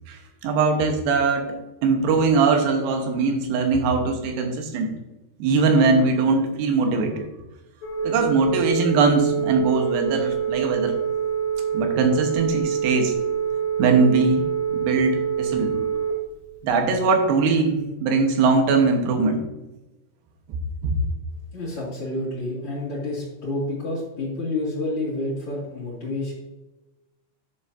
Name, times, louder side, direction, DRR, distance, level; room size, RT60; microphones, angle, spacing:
voice 1, 0.1-1.6 1.8-4.9 5.4-7.1 8.0-11.0 11.7-13.1 13.8-15.8 16.6-19.4 20.8-21.0, right 4 dB, 80° right, 4 dB, 3.1 m, -21 dB
Telephone, 7.8-16.1, right 8 dB, 80° left, 1.6 m, -25 dB
voice 2, 21.5-26.3, left 2 dB, 40° left, -8 dB, 2.3 m, -29 dB
10.5 x 6.9 x 2.6 m, 1.0 s
omnidirectional pair, 5.1 m